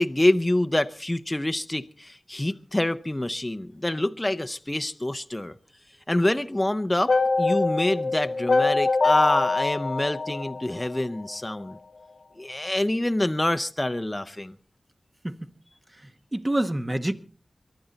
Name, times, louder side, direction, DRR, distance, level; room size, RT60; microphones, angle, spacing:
voice 1, 0.0-5.5 6.1-11.8 12.4-14.5, left 1 dB, 20° left, 0.7 m, -26 dB
sound 1, 7.1-11.3, left 3 dB, 75° left, 1.2 m, -24 dB
voice 2, 15.9-17.1, right 1 dB, 25° right, 1.2 m, -28 dB
23.5 x 11.5 x 4.0 m
wide cardioid pair, 75°, 0 cm